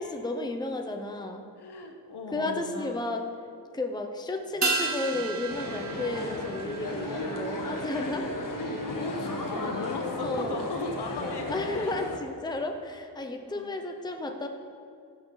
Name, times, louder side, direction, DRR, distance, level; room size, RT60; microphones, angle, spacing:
voice 1, 0.0-1.5 2.3-3.2 3.7-8.3 10.2-10.6 11.2-14.5, left 2 dB, 10° left, 4 dB, 0.7 m, -33 dB
voice 2, 1.6-3.2 8.9-11.4 11.7-12.0 13.4-13.8, left 3 dB, 75° left, 4 dB, 1.2 m, -37 dB
Wind instrument woodwind instrument, 4.5-7.8 8.4-11.2, right 3 dB, 65° right, 1.5 m, -45 dB
sound 1, 4.6-9.3 9.6-9.7, right 3 dB, 45° right, 0.7 m, -34 dB
sound 2, 5.5-12.2, left 2 dB, 55° left, 1.5 m, -35 dB
15.5 x 7.0 x 4.0 m, 2.4 s
wide cardioid pair, 110°, 40 cm